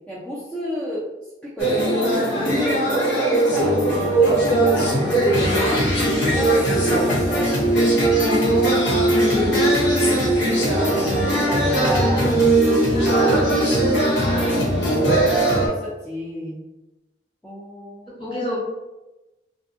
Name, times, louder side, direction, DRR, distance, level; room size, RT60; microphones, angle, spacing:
voice 1, 0.1-1.1 1.4-5.7 6.3-8.0 8.5-9.0 9.5-12.5 13.0-13.7 14.2-15.3 15.7-16.6 17.4-18.6, equal, 5° left, -8 dB, 0.4 m, -31 dB
sound 1, 1.6-15.7, right 1 dB, 90° left, 0.7 m, -19 dB
voice 2, 5.2-5.9 6.6-7.1 12.9-13.5 18.2-18.6, equal, 30° left, -6 dB, 1.0 m, -28 dB
2.6 x 2.5 x 2.5 m, 1.0 s
head